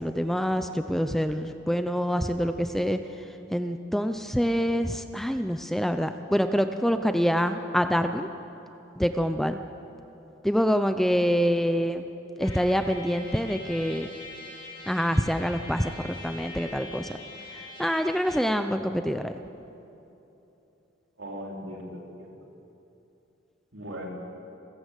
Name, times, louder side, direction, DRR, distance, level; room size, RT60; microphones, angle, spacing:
voice 1, 0.0-3.0 3.5-8.3 9.0-9.6 10.4-12.1 12.4-14.1 14.9-17.1 17.8-19.3, equal, ahead, 8 dB, 0.6 m, -26 dB
Trumpet, 12.4-18.5, left 2 dB, 25° left, 5.5 m, -43 dB
voice 2, 21.2-22.3 23.7-24.1, equal, 70° right, 0 dB, 3.9 m, -39 dB
28.0 x 14.0 x 8.3 m, 3.0 s
head